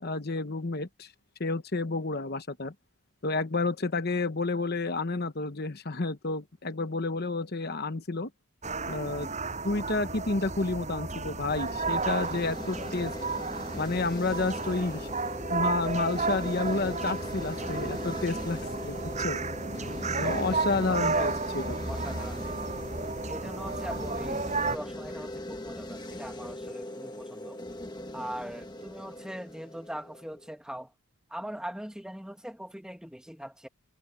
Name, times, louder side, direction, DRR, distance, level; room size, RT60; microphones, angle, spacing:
voice 1, 0.0-1.1 1.4-2.7 3.2-8.3 8.9-9.3 9.6-13.2 13.7-15.1 15.5-18.6 18.9-19.4 20.1-21.8, left 3 dB, 45° left, 1.0 m, -30 dB
sound 1, 8.6-24.8, right 3 dB, 30° right, 6.6 m, -33 dB
sound 2, 11.5-30.6, left 1 dB, 20° left, 1.2 m, -40 dB
voice 2, 14.7-15.1 20.3-21.4 21.9-22.6 23.3-27.6 28.1-30.9 31.3-33.7, equal, 5° right, 1.2 m, -41 dB
head